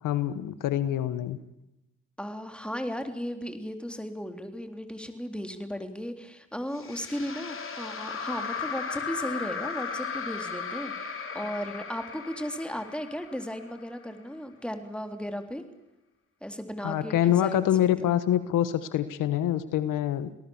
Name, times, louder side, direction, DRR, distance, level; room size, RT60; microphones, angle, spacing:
voice 1, 0.0-1.4 16.8-20.4, left 11 dB, 75° left, 13 dB, 1.4 m, -26 dB
voice 2, 2.2-15.6 16.4-17.7 18.0-18.1, equal, 5° left, 7 dB, 3.6 m, -36 dB
sound 1, 6.7-14.0, left 5 dB, 40° left, 4.0 m, -36 dB
27.5 x 19.0 x 7.3 m, 0.91 s
supercardioid pair, 65°, 32 cm